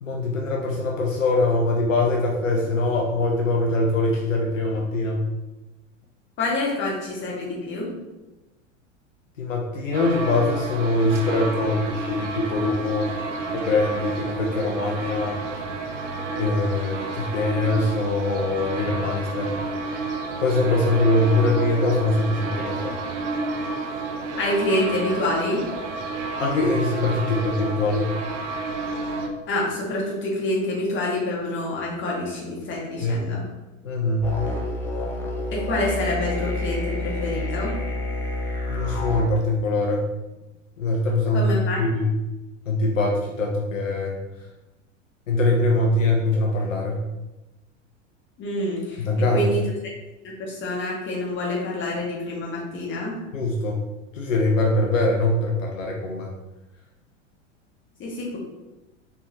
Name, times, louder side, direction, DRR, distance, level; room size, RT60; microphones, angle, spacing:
voice 1, 0.0-5.2 9.4-13.1 13.5-15.4 16.3-19.5 20.4-23.0 26.4-28.1 33.0-33.3 33.8-34.4 38.7-40.1 40.8-42.1 42.7-44.2 45.3-47.1 49.0-49.5 53.3-53.8 54.1-56.3, left 2 dB, 75° left, 0 dB, 0.7 m, -23 dB
voice 2, 6.4-7.9 24.4-25.6 29.5-33.5 35.5-37.7 41.3-41.8 48.4-49.0 49.3-49.6 50.2-53.1 58.0-58.4, left 1 dB, 30° left, -3 dB, 1.5 m, -27 dB
sound 1, 9.9-29.3, right 3 dB, 65° right, 0.7 m, -31 dB
sound 2, 34.2-39.2, left 2 dB, 5° left, 0.3 m, -28 dB
4.3 x 3.4 x 2.8 m, 1.0 s
figure-of-eight pair, 85°, 39 cm